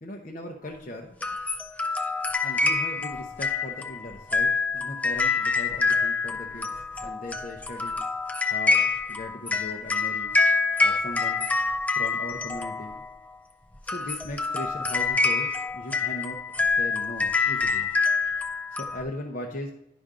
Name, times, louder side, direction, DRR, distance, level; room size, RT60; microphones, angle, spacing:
voice 1, 0.0-1.4 2.4-8.0 8.4-10.4 10.8-11.5 11.9-13.0 13.8-16.4 16.7-17.9 18.8-19.7, left 1 dB, 45° left, 0 dB, 0.7 m, -38 dB
sound 1, 1.2-13.2 13.8-19.0, left 4 dB, 10° left, 0.3 m, -26 dB
10.5 x 5.1 x 3.7 m, 0.87 s
head